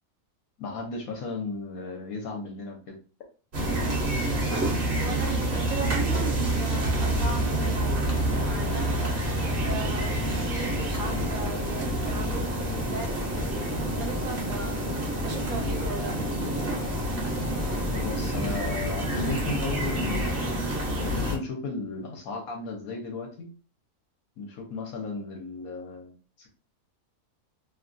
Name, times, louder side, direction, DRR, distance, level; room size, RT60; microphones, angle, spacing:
voice 1, 0.6-3.0 17.9-20.6 21.0-23.5 24.4-26.5, left 3 dB, 70° left, 1.2 m, -35 dB
sound 1, 3.5-21.4, right 1 dB, 45° right, 0.9 m, -27 dB
voice 2, 5.0-9.0 9.6-16.2, right 4 dB, 70° right, 1.2 m, -38 dB
2.9 x 2.3 x 2.5 m
omnidirectional pair, 1.6 m